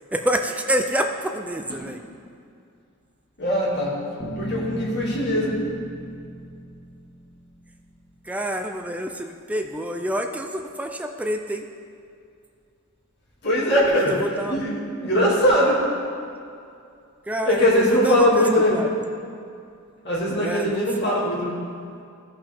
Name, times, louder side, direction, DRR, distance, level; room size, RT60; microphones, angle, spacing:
voice 1, 0.0-2.0 8.2-11.7 13.9-14.6 17.3-18.9 20.4-21.3, right 1 dB, 5° right, 5 dB, 0.4 m, -28 dB
voice 2, 3.4-4.0 4.4-5.7 13.4-14.2 14.5-15.9 17.4-18.8 20.0-21.5, equal, 55° left, -5 dB, 2.2 m, -21 dB
sound 1, 4.2-8.2, right 1 dB, 25° left, 2.1 m, -35 dB
15.5 x 5.6 x 3.4 m, 2.4 s
head